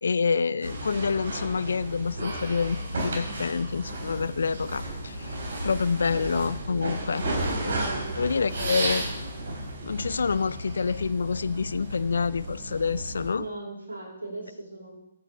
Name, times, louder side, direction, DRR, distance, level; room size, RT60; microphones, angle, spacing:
voice 1, 0.0-5.4 5.6-7.2 7.6-7.8 8.2-9.0 9.8-13.4, left 5 dB, 65° left, 18 dB, 0.4 m, -27 dB
sound 1, 0.6-13.3, right 1 dB, 55° right, 3.5 m, -33 dB
voice 2, 7.9-8.2 13.3-15.0, right 2 dB, 85° right, -2 dB, 4.5 m, -38 dB
21.5 x 8.4 x 3.4 m, 0.87 s
figure-of-eight pair, 130°, 0 cm